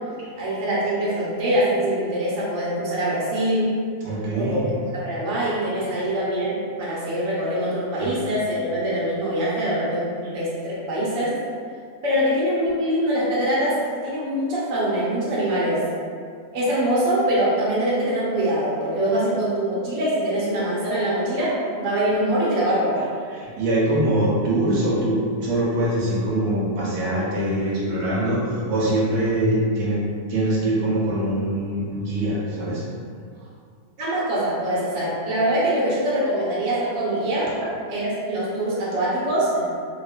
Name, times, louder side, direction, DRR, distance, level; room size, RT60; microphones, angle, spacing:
voice 1, 0.4-3.7 4.3-4.6 4.9-11.4 12.0-15.8 16.5-23.1 34.0-37.5 37.9-39.6, right 1 dB, 60° right, -8 dB, 1.0 m, -23 dB
voice 2, 4.0-4.7 8.0-8.1 23.3-30.0 30.3-32.8, right 1 dB, 85° right, -7 dB, 1.1 m, -23 dB
2.9 x 2.2 x 2.3 m, 2.2 s
omnidirectional pair, 1.6 m